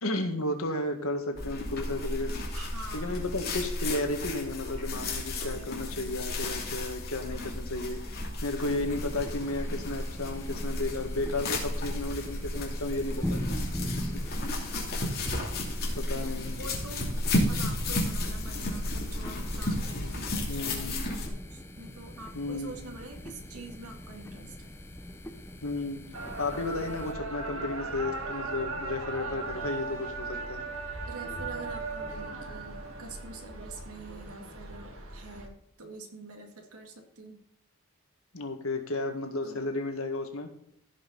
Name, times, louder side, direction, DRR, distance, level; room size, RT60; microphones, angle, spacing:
voice 1, 0.0-2.3 2.9-13.4 14.0-14.1 16.0-16.5 20.5-21.1 22.3-22.8 25.6-26.0 26.4-30.6 38.3-40.5, left 2 dB, 75° left, 5 dB, 1.8 m, -33 dB
sound 1, 1.4-21.3, left 1 dB, 45° left, 2.8 m, -33 dB
voice 2, 2.5-3.2 5.4-6.1 13.8-14.8 16.0-17.1 17.5-24.7 31.1-35.5 35.8-37.4 39.4-39.8, right 2 dB, 90° right, 3 dB, 2.1 m, -46 dB
sound 2, 8.8-27.1, equal, 10° left, 0.7 m, -42 dB
sound 3, 26.1-35.5, right 3 dB, 75° right, 2.0 m, -38 dB
16.0 x 5.6 x 4.0 m, 0.72 s
head